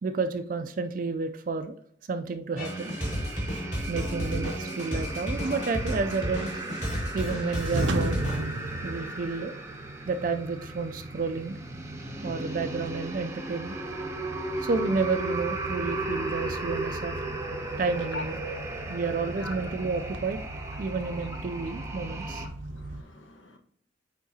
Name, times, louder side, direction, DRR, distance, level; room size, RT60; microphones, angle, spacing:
voice 1, 0.0-1.8 2.1-2.9 3.9-6.5 7.1-8.2 8.8-9.5 10.1-11.6 12.2-13.8 14.6-17.1 17.8-18.4 18.9-20.4 20.8-22.4, right 4 dB, 45° right, 0.3 m, -30 dB
sound 1, 2.6-8.4, equal, 40° left, 2.1 m, -32 dB
sound 2, 2.6-22.5, right 2 dB, 15° right, 0.7 m, -36 dB
sound 3, 5.1-23.0, right 2 dB, 80° right, 0.6 m, -38 dB
voice 2, 22.4-23.6, left 2 dB, 80° left, 1.0 m, -43 dB
9.3 x 3.7 x 2.8 m
head